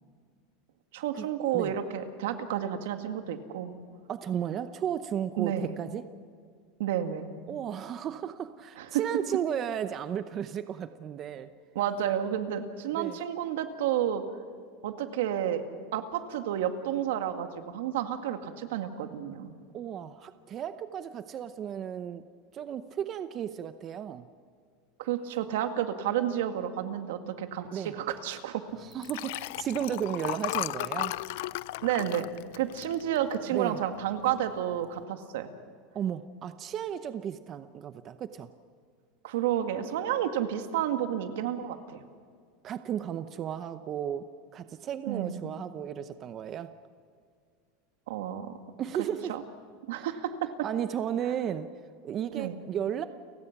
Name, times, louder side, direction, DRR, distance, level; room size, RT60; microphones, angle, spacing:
voice 1, 0.9-3.8 5.4-5.7 6.8-7.3 8.8-9.0 11.8-14.2 14.8-15.6 15.9-19.5 25.0-28.6 31.8-32.3 32.5-35.5 39.2-42.0 45.1-45.5 48.1-48.6 49.3-49.4 49.9-50.5 52.3-52.6, right 10 dB, 80° right, 7 dB, 1.9 m, -31 dB
voice 2, 4.1-6.0 7.5-11.5 12.9-13.2 19.7-22.2 22.5-24.3 27.7-27.9 28.8-31.1 33.5-33.8 35.9-38.5 42.6-46.7 48.8-49.3 50.0-50.1 50.6-51.7 52.0-53.0, right 9 dB, 30° right, 11 dB, 0.7 m, -34 dB
Liquid, 28.9-33.6 34.0-34.3 34.6-34.7, left 18 dB, 70° left, 0.5 m, -35 dB
30.0 x 17.0 x 6.0 m, 2.1 s
supercardioid pair, 150°, 0 cm